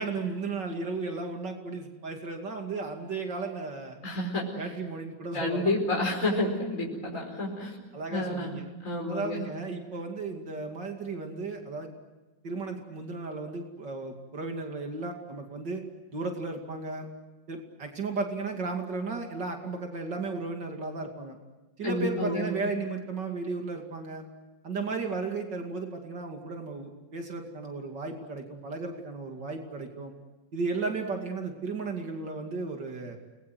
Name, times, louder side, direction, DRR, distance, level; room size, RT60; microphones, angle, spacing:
voice 1, 0.0-4.0 4.6-5.7 7.9-8.6 9.1-11.9 12.4-15.8 16.1-17.1 17.5-21.4 21.8-24.2 24.6-30.1 30.5-33.2, right 3 dB, 70° right, 3 dB, 3.2 m, -34 dB
voice 2, 4.0-4.5 5.3-7.8 8.1-9.4 21.8-22.5, left 1 dB, 40° left, -2 dB, 5.4 m, -30 dB
29.5 x 21.5 x 7.9 m, 1.2 s
omnidirectional pair, 2.0 m